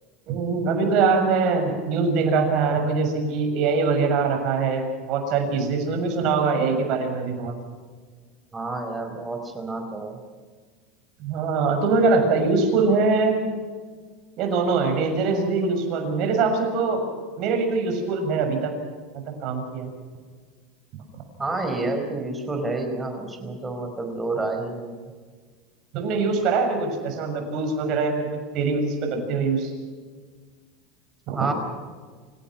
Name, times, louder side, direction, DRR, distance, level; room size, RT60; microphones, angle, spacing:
voice 1, 0.3-7.5 11.2-13.4 14.4-17.0 17.4-18.7 19.4-19.9 25.9-28.3 28.5-29.7 31.3-31.5, right 4 dB, 55° right, 5 dB, 6.8 m, -23 dB
voice 2, 8.5-10.2 21.4-25.1 31.3-31.5, right 2 dB, 15° right, 5 dB, 5.0 m, -29 dB
28.0 x 17.0 x 6.0 m, 1.5 s
supercardioid pair, 125°, 0 cm